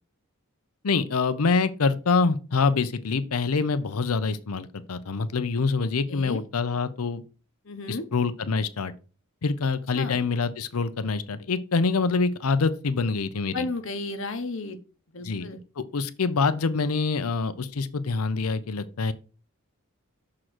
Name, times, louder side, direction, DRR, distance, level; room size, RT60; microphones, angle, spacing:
voice 1, 0.8-7.2 7.9-8.9 9.4-13.7 15.2-15.5 15.8-19.1, left 4 dB, 90° left, 0.7 m, -25 dB
voice 2, 5.8-6.4 7.6-8.0 10.0-10.2 13.5-14.8 15.1-15.6, left 3 dB, 60° left, 1.0 m, -33 dB
6.4 x 3.8 x 6.0 m
head